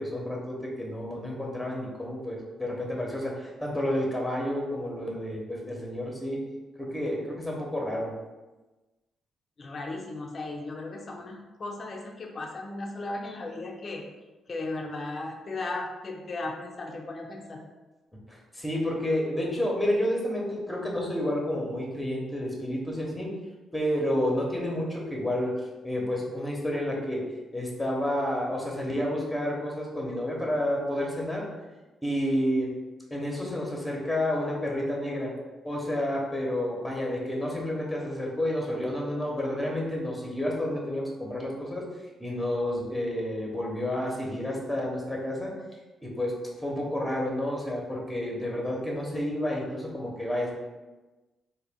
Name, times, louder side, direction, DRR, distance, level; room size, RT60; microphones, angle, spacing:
voice 1, 0.0-6.4 6.8-8.1 18.3-23.3 23.7-25.6 25.8-27.3 27.5-31.4 32.0-32.7 33.1-35.3 35.6-41.8 42.2-45.5 46.0-50.5, left 1 dB, 5° left, -2 dB, 0.8 m, -30 dB
voice 2, 9.6-14.0 14.5-17.6, left 2 dB, 40° left, 1 dB, 0.5 m, -36 dB
3.8 x 2.2 x 3.5 m, 1.2 s
cardioid pair, 95°, 0 cm